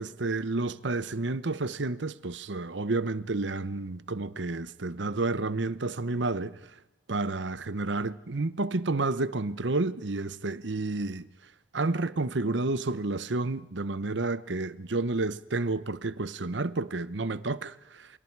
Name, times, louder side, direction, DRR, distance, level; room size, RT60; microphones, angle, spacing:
voice 1, 0.0-6.6 7.1-11.3 11.7-18.1, right 3 dB, 70° right, 0.9 m, -30 dB
28.5 x 24.5 x 4.7 m
head